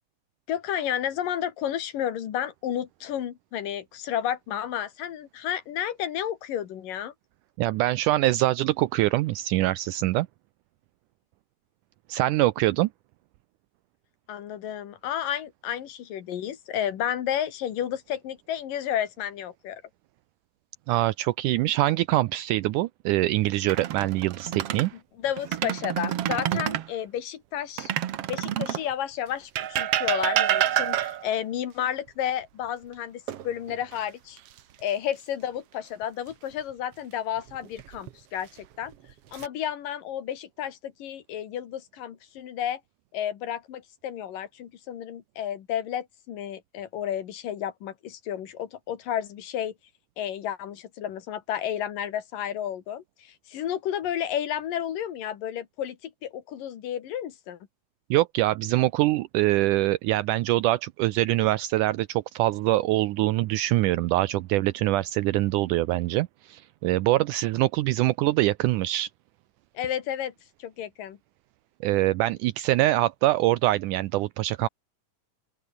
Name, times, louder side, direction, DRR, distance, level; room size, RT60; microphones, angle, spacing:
voice 1, 0.5-7.1 14.3-19.8 24.9-27.9 28.3-34.4 34.8-38.5 38.8-38.9 39.3-42.8 43.1-49.7 50.2-57.6 69.8-70.3 70.6-71.2, left 10 dB, 85° left, 3.5 m, -32 dB
voice 2, 7.6-10.3 12.1-12.9 20.9-24.9 58.1-69.1 71.8-74.7, right 17 dB, 80° right, 2.1 m, -24 dB
sound 1, 23.5-24.9 25.4-26.9 27.8-28.9 29.6-31.4 33.3-34.0 34.4-34.6 37.5-38.1 38.8-39.5, right 11 dB, 60° right, 1.8 m, -28 dB
open air
omnidirectional pair, 3.8 m